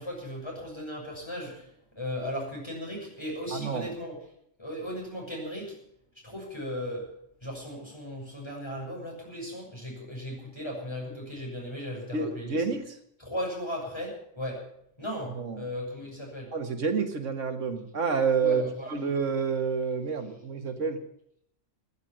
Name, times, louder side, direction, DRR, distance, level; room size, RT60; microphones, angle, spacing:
voice 1, 0.0-1.7 1.9-4.2 4.6-5.8 6.2-7.1 7.4-12.6 13.2-14.6 15.0-16.5 18.4-18.9, equal, 20° left, -2 dB, 6.8 m, -36 dB
voice 2, 3.5-3.9 12.1-13.0 15.4-15.6 16.5-18.6 18.9-21.0, right 5 dB, 85° right, 7 dB, 1.8 m, -28 dB
16.5 x 9.4 x 8.7 m, 0.72 s
omnidirectional pair, 1.2 m